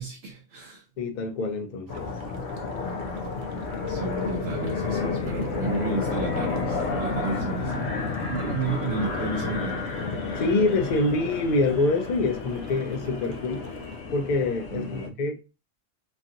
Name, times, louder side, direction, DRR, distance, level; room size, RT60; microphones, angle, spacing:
voice 1, 0.0-0.8 3.9-7.9 8.3-9.8 14.7-15.1, right 4 dB, 60° right, 0.8 m, -32 dB
voice 2, 1.0-2.1 8.4-8.6 10.4-13.6 14.1-15.4, left 3 dB, 55° left, 0.5 m, -25 dB
sound 1, 1.9-15.1, left 4 dB, 75° left, 1.0 m, -31 dB
sound 2, 1.9-14.0, right 6 dB, 85° right, 1.1 m, -48 dB
3.1 x 2.5 x 2.6 m
omnidirectional pair, 1.4 m